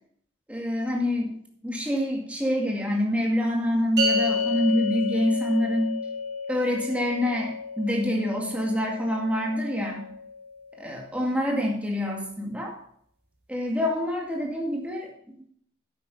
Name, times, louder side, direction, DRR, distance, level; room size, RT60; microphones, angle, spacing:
voice 1, 0.5-1.3 1.6-5.9 6.5-10.0 10.8-12.8 13.5-15.5, left 1 dB, 10° right, 0 dB, 2.2 m, -26 dB
sound 1, 4.0-10.5, left 3 dB, 65° right, 3.5 m, -31 dB
10.0 x 8.6 x 5.6 m, 0.65 s
head